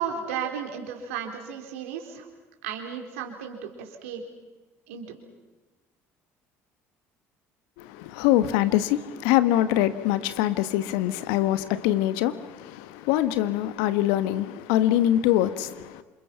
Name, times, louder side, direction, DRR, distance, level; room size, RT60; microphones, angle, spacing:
voice 1, 0.0-2.3 2.6-4.2 4.9-5.2, right 8 dB, 75° right, 3 dB, 3.8 m, -34 dB
voice 2, 7.8-16.0, left 13 dB, 70° left, 13 dB, 1.3 m, -24 dB
28.5 x 27.5 x 5.8 m, 1.2 s
hypercardioid pair, 60°, 7 cm